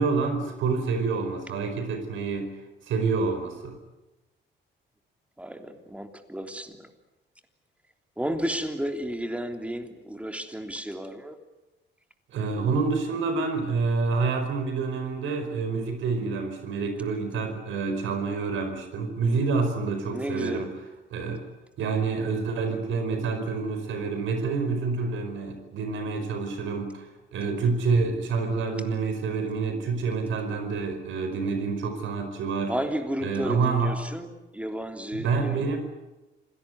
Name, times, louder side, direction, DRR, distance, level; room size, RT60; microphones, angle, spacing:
voice 1, 0.0-2.5 2.9-3.8 12.3-20.7 21.1-21.4 21.8-27.1 27.3-32.7 33.2-34.0 35.1-35.8, right 4 dB, 80° right, 7 dB, 4.9 m, -27 dB
voice 2, 5.4-6.9 8.2-11.4 20.0-20.7 32.7-34.3 34.5-35.8, right 1 dB, 5° right, 5 dB, 3.3 m, -32 dB
26.5 x 17.5 x 9.6 m, 1.0 s
cardioid pair, 90°, 20 cm